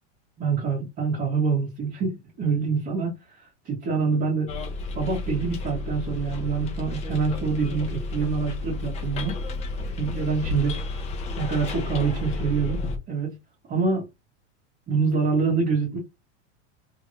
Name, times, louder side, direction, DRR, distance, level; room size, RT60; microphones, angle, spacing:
voice 1, 0.4-4.5 5.0-9.4 10.0-10.8 11.4-13.4 13.7-14.1 14.9-16.0, right 5 dB, 25° right, 1.9 m, -26 dB
Bus, 4.5-13.0, left 2 dB, 20° left, 0.6 m, -31 dB
3.7 x 3.1 x 3.0 m
supercardioid pair, 160°, 37 cm